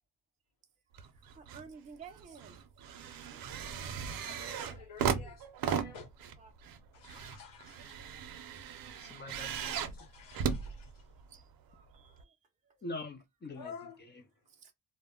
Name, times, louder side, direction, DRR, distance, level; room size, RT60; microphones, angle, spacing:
sound 1, 0.9-1.7 2.0-11.4 12.2-12.3, right 7 dB, 85° right, 0.5 m, -37 dB
voice 1, 1.3-3.0 3.3-3.9 4.7-4.9 5.2-5.3 6.4-6.5 7.8-8.4 10.3-10.4 11.3-11.4 11.7-12.3 14.6-14.7, right 6 dB, 25° right, 0.4 m, -54 dB
voice 2, 4.1-6.1 6.9-8.0 8.6-8.7 9.7-11.1 13.5-14.0, left 6 dB, 75° left, 1.0 m, -51 dB
voice 3, 9.0-10.1 12.8-13.7, left 2 dB, 30° left, 0.5 m, -44 dB
2.1 x 2.0 x 3.5 m
wide cardioid pair, 150°, 34 cm